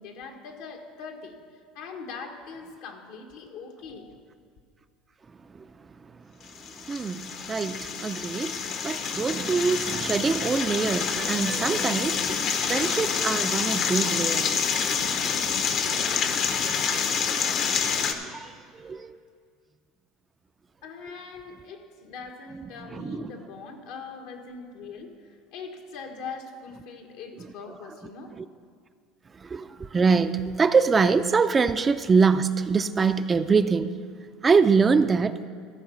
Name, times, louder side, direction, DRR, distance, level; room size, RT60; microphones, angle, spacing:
voice 1, 0.0-4.2 20.8-28.3, left 4 dB, 75° left, 1.3 m, -41 dB
sound 1, 6.5-18.1, left 6 dB, 50° left, 0.9 m, -27 dB
voice 2, 6.9-12.4 12.7-14.7 16.6-16.7 16.9-17.0 18.2-19.2 22.9-23.3 28.4-28.5 29.4-33.9 34.4-35.4, right 5 dB, 25° right, 0.4 m, -24 dB
14.0 x 4.7 x 6.9 m
supercardioid pair, 95°, 0 cm